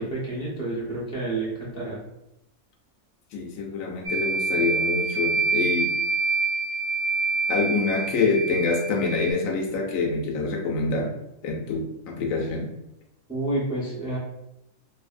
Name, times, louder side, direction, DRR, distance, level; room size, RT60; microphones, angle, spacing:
voice 1, 0.0-2.0 13.3-14.2, right 2 dB, 5° right, -5 dB, 0.5 m, -29 dB
voice 2, 3.3-5.9 7.5-11.1 11.4-12.7, left 4 dB, 80° left, 1 dB, 1.0 m, -26 dB
sound 1, 4.0-9.3, right 4 dB, 65° right, 0.9 m, -26 dB
2.6 x 2.6 x 2.4 m, 0.83 s
omnidirectional pair, 1.4 m